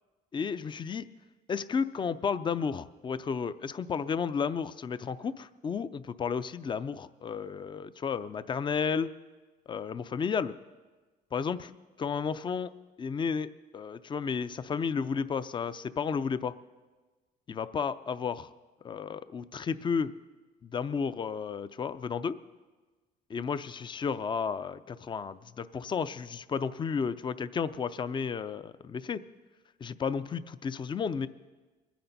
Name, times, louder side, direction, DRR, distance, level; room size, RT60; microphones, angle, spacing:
voice 1, 0.3-1.1 1.5-9.1 9.7-10.5 11.3-11.7 12.0-12.7 13.0-13.5 13.7-16.5 17.5-18.5 18.8-20.1 20.6-22.4 23.3-29.2 29.8-31.3, left 6 dB, 30° left, 14 dB, 0.5 m, -32 dB
22.5 x 10.0 x 4.1 m, 1.3 s
cardioid pair, 110°, 17 cm